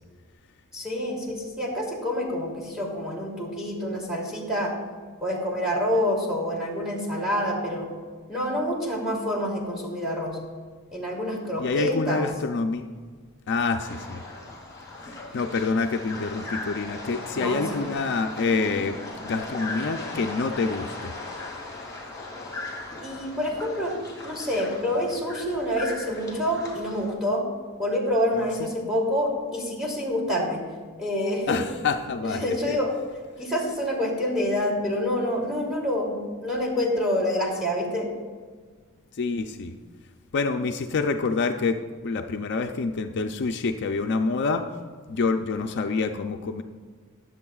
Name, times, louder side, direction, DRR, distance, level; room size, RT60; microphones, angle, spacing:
voice 1, 0.7-4.7 5.2-7.9 8.3-10.4 10.9-12.3 17.3-17.8 23.0-23.9 24.2-27.4 27.8-30.6 31.0-31.6 32.2-32.9 33.4-38.1, equal, 5° right, -3 dB, 2.6 m, -27 dB
voice 2, 11.6-12.8 13.5-14.2 15.0-19.0 19.2-21.1 28.6-28.7 31.5-32.8 39.1-39.7 40.3-44.7 45.1-46.6, left 4 dB, 55° left, 6 dB, 0.4 m, -27 dB
sound 1, 13.8-27.1, left 2 dB, 15° left, 2.7 m, -38 dB
20.5 x 7.8 x 2.4 m, 1.5 s
head